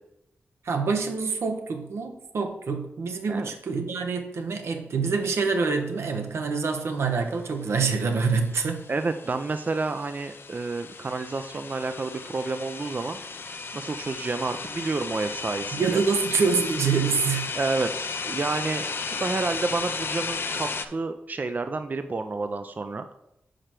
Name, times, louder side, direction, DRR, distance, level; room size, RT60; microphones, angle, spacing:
voice 1, 0.6-8.9 15.7-17.5, right 5 dB, 80° right, 5 dB, 0.8 m, -26 dB
sound 1, 8.3-20.8, left 4 dB, 60° left, 0.5 m, -34 dB
voice 2, 8.9-13.2 13.7-16.0 17.6-18.9 19.2-23.1, right 3 dB, 40° right, 9 dB, 0.4 m, -30 dB
5.0 x 4.4 x 5.9 m, 0.86 s
cardioid pair, 55°, 4 cm